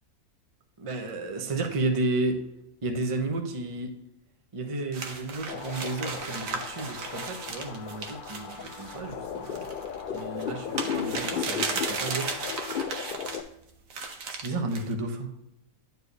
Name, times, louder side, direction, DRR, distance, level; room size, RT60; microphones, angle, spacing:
voice 1, 0.8-2.4 2.8-3.9 4.5-9.7 10.1-12.3 14.3-15.3, right 2 dB, 25° right, 4 dB, 0.8 m, -32 dB
sound 1, 4.9-13.4 13.9-14.9, right 4 dB, 65° right, 1.3 m, -36 dB
sound 2, 5.5-13.4, left 7 dB, 65° left, 0.5 m, -35 dB
9.8 x 4.7 x 3.3 m, 0.84 s
omnidirectional pair, 1.6 m